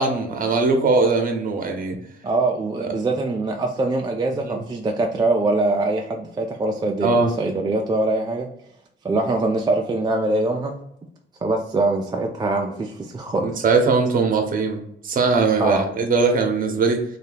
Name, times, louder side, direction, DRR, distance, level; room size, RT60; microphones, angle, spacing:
voice 1, 0.0-2.0 4.4-4.6 7.0-7.3 13.4-17.0, right 4 dB, 45° right, 4 dB, 0.7 m, -20 dB
voice 2, 2.2-8.5 9.0-10.8 11.4-13.6 15.6-15.8, right 2 dB, 20° right, 2 dB, 0.3 m, -23 dB
2.7 x 2.2 x 3.3 m, 0.76 s
cardioid pair, 90°, 20 cm